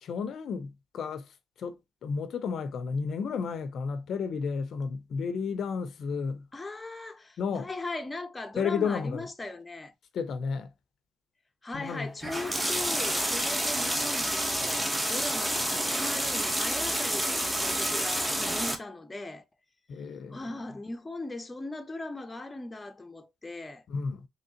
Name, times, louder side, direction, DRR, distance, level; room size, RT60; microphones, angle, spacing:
voice 1, 0.0-6.5 7.4-7.7 8.6-9.3 10.1-10.7 11.7-12.1 19.9-20.4 23.9-24.3, left 5 dB, 65° left, 0.5 m, -32 dB
voice 2, 6.5-9.9 11.6-19.4 20.3-23.8, left 2 dB, 20° left, 0.6 m, -39 dB
sound 1, 12.2-18.7, right 1 dB, 10° right, 0.8 m, -29 dB
3.5 x 3.1 x 2.7 m
cardioid pair, 90°, 0 cm